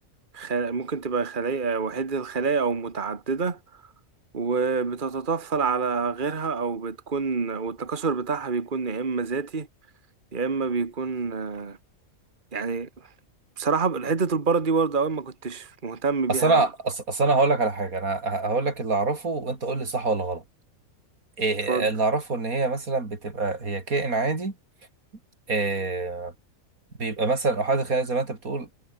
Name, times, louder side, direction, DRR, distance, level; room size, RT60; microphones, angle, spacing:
voice 1, 0.3-3.6 4.3-9.7 10.3-11.8 12.5-12.9 13.6-16.7 21.7-21.9, right 4 dB, 35° right, 1.9 m, -27 dB
voice 2, 16.3-20.4 21.4-24.5 25.5-26.3 27.0-28.7, right 3 dB, 85° right, 4.1 m, -25 dB
omnidirectional pair, 1.4 m